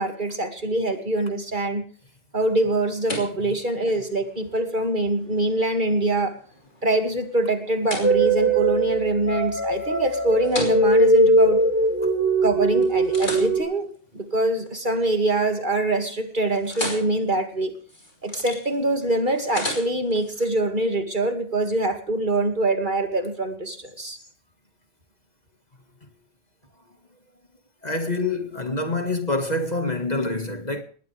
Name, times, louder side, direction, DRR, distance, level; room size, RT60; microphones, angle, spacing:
voice 1, 0.0-1.8 2.3-6.4 6.8-11.6 12.4-17.8 18.2-24.2, right 2 dB, 40° right, 2.5 m, -24 dB
sound 1, 2.4-12.4 12.8-15.1 15.5-15.9 16.2-20.5, left 1 dB, 85° left, 5.7 m, -38 dB
sound 2, 8.0-13.6, right 2 dB, 10° right, 5.0 m, -20 dB
voice 2, 27.8-30.8, left 2 dB, 35° left, 2.0 m, -26 dB
20.5 x 18.5 x 3.5 m
omnidirectional pair, 1.2 m